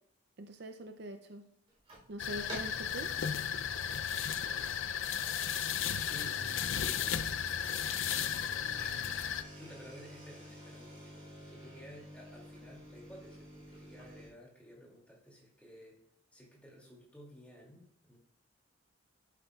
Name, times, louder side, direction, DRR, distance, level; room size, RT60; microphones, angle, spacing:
voice 1, 0.4-1.5 2.1-3.1, right 1 dB, 55° right, 7 dB, 0.5 m, -43 dB
sound 1, 1.7-2.1 2.5-2.9 3.4-3.7 4.2-4.3 4.6-4.7 5.7-14.3, equal, 30° right, 3.5 m, -51 dB
sound 2, 2.2-9.4, left 8 dB, 70° left, 0.5 m, -34 dB
voice 2, 4.4-4.9 5.4-7.5 9.1-16.0 16.3-18.2, equal, 5° left, -3 dB, 2.5 m, -55 dB
11.5 x 8.1 x 2.4 m, 0.73 s
head